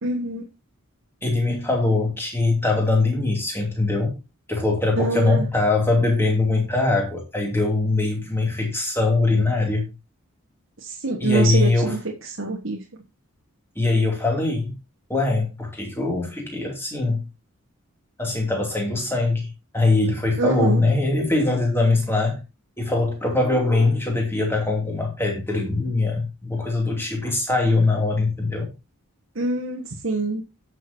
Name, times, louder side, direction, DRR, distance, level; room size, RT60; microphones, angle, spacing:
voice 1, 0.0-0.4 5.0-5.5 10.8-12.0 12.4-12.8 20.4-20.8 29.3-30.4, right 3 dB, 60° right, 1.5 m, -24 dB
voice 2, 1.2-4.2 4.5-9.9 11.2-11.9 13.7-14.8 15.1-17.2 18.2-22.4 22.8-28.7, left 2 dB, 10° left, 2.7 m, -22 dB
17.0 x 6.4 x 2.8 m
head